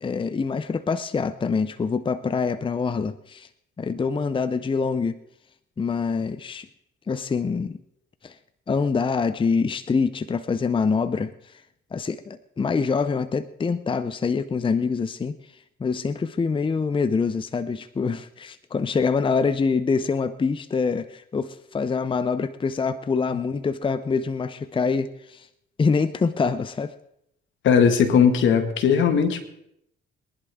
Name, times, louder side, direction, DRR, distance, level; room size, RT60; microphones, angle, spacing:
voice 1, 0.0-3.5 3.8-5.2 5.8-6.7 7.1-7.8 8.2-8.3 8.7-11.3 11.9-15.4 15.8-25.5 25.8-26.9, left 5 dB, 25° left, 13 dB, 0.6 m, -25 dB
voice 2, 27.6-29.4, left 7 dB, 75° left, 7 dB, 1.9 m, -18 dB
23.5 x 11.0 x 3.6 m, 0.77 s
cardioid pair, 90°, 20 cm